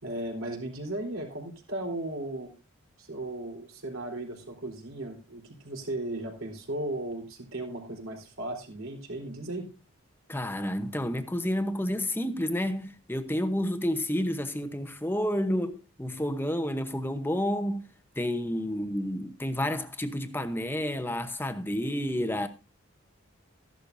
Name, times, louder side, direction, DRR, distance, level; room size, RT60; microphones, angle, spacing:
voice 1, 0.0-2.5 3.0-9.7, right 1 dB, 70° right, 3.8 m, -36 dB
voice 2, 10.3-17.8 18.2-22.5, left 1 dB, 10° left, 0.8 m, -30 dB
14.5 x 11.5 x 2.6 m
head